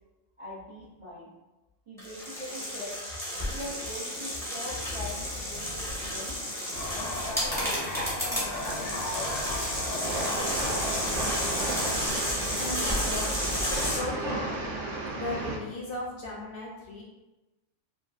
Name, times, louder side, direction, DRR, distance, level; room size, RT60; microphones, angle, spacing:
voice 1, 0.4-1.3 1.9-3.0 3.5-6.3 6.9-9.6, left 1 dB, 50° right, -8 dB, 0.4 m, -42 dB
sound 1, 2.0-14.0, equal, 5° left, 0.6 m, -32 dB
sound 2, 6.7-11.9, left 2 dB, 85° left, 1.1 m, -36 dB
Train, 10.0-15.6, right 2 dB, 75° right, 0.9 m, -33 dB
voice 2, 12.6-13.3 13.7-14.5 15.1-17.0, left 2 dB, 60° left, -3 dB, 0.7 m, -36 dB
2.9 x 2.4 x 2.4 m, 1.0 s
omnidirectional pair, 1.3 m